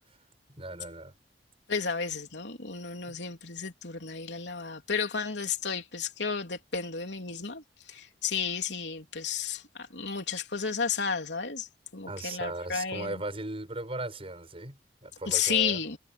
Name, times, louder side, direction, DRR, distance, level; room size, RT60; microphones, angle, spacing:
voice 1, 0.5-1.1 7.3-7.5 12.1-15.8, right 2 dB, 35° right, 7.9 m, -38 dB
voice 2, 1.7-7.6 7.9-11.7 11.9-13.2 15.2-16.0, left 6 dB, 75° left, 3.5 m, -32 dB
head